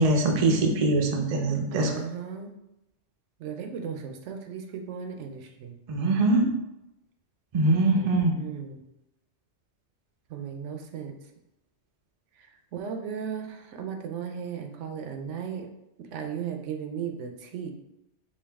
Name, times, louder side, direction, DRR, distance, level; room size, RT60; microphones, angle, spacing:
voice 1, 0.0-1.9 5.9-6.5 7.5-8.3, right 2 dB, 45° right, 2 dB, 0.5 m, -22 dB
voice 2, 1.7-2.5 3.4-5.8 7.9-8.1 8.4-8.8 10.3-11.1 12.4-15.7 16.1-17.7, right 7 dB, 75° right, 6 dB, 0.9 m, -36 dB
4.6 x 2.6 x 3.4 m, 0.88 s
omnidirectional pair, 1.3 m